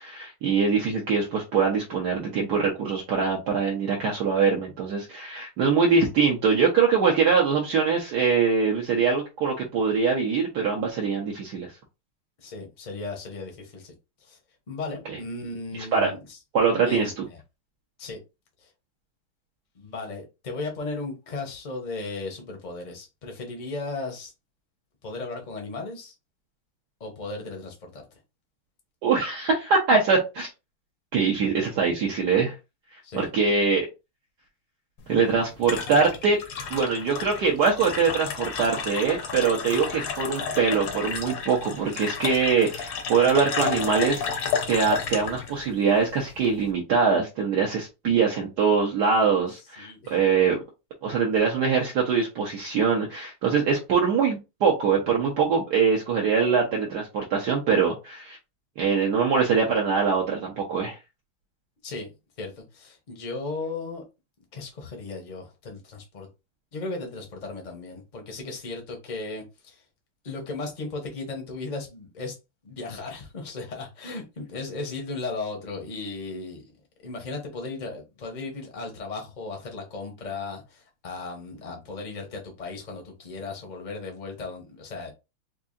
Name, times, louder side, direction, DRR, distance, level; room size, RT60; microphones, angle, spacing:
voice 1, 0.0-11.7 15.9-16.1 16.5-17.1 29.0-30.5 31.1-32.5 33.1-33.9 35.1-36.4 36.7-44.2 44.7-50.6 51.0-58.4 58.8-61.0, right 5 dB, 60° right, 1.2 m, -23 dB
voice 2, 12.4-13.9 14.2-14.4 14.7-16.4 16.7-17.4 18.0-18.2 18.6-18.7 19.7-24.3 25.0-26.1 27.0-28.2 33.0-33.3 49.8-50.2 61.8-62.1 62.4-64.0 64.5-66.3 66.7-69.8 70.2-72.3 72.6-76.7 77.0-85.1, left 3 dB, 35° left, 0.7 m, -36 dB
sound 1, 35.0-46.7, left 6 dB, 70° left, 1.4 m, -32 dB
4.6 x 2.6 x 2.6 m
omnidirectional pair, 2.3 m